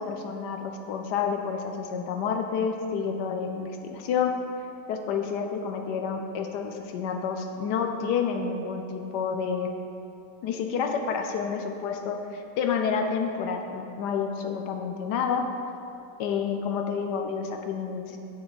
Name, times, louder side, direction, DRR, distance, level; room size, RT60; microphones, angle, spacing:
voice 1, 0.0-4.3 4.9-9.7 10.4-15.5 16.2-18.2, left 6 dB, 75° left, 4 dB, 1.1 m, -29 dB
7.9 x 6.5 x 4.0 m, 2.7 s
omnidirectional pair, 2.0 m